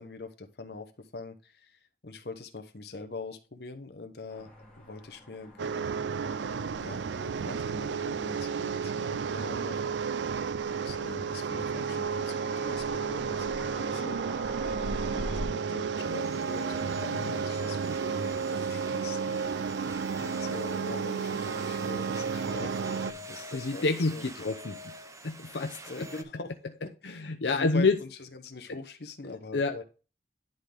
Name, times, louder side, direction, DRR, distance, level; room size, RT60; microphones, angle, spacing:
voice 1, 0.0-4.5 4.8-6.0 6.8-10.2 10.7-14.5 14.8-24.5 25.9-26.5 26.8-29.8, left 3 dB, 65° left, 1.0 m, -44 dB
sound 1, 4.3-15.5, left 1 dB, 5° left, 1.9 m, -45 dB
sound 2, 5.6-23.1, right 6 dB, 80° right, 0.4 m, -32 dB
sound 3, 16.0-26.2, equal, 15° right, 0.6 m, -45 dB
voice 2, 23.5-24.8 25.2-26.1 27.0-28.0 29.5-29.8, left 3 dB, 85° left, 0.7 m, -28 dB
11.0 x 3.9 x 3.5 m
head